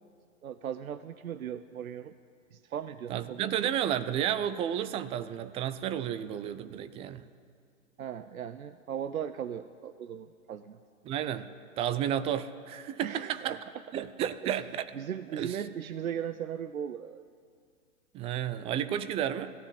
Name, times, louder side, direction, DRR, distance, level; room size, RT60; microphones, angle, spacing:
voice 1, 0.4-2.1 2.5-3.5 8.0-10.8 13.0-13.6 13.9-14.6 14.9-17.2, right 9 dB, 85° right, 13 dB, 0.8 m, -38 dB
voice 2, 3.1-7.3 11.0-11.5 11.8-13.6 13.9-14.9 15.4-15.6 18.1-19.5, right 10 dB, 15° right, 13 dB, 0.4 m, -32 dB
18.0 x 15.0 x 9.9 m, 2.2 s
hypercardioid pair, 120°, 41 cm